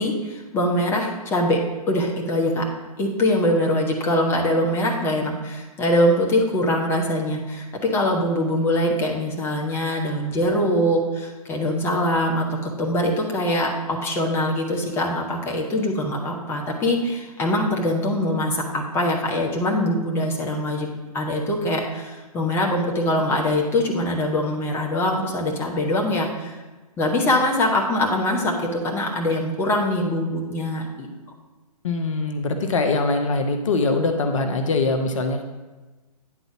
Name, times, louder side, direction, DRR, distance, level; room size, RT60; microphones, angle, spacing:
voice 1, 0.0-1.6 1.9-2.6 3.0-20.9 21.1-26.6 27.0-31.1, left 1 dB, 10° left, -1 dB, 1.0 m, -23 dB
voice 2, 31.8-35.4, left 3 dB, 55° left, 5 dB, 0.8 m, -22 dB
9.8 x 3.9 x 5.9 m, 1.2 s
figure-of-eight pair, 125°, 20 cm